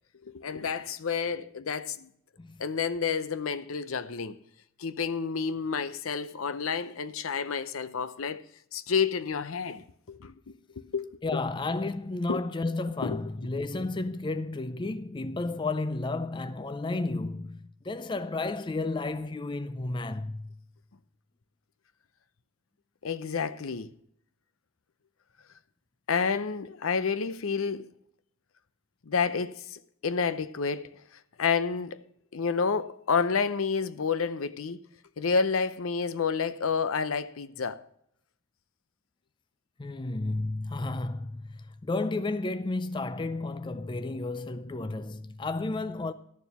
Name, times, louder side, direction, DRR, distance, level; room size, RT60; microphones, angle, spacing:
voice 1, 0.2-2.1 2.6-4.4 4.8-8.4 8.7-11.1 12.3-12.4 13.0-13.2 23.0-23.9 26.1-27.9 29.1-30.9 31.4-32.0 32.3-34.8 35.2-37.9, left 5 dB, 80° left, 0.6 m, -30 dB
voice 2, 11.2-20.5 39.8-46.1, left 2 dB, 20° left, 0.4 m, -32 dB
13.0 x 7.0 x 5.9 m
head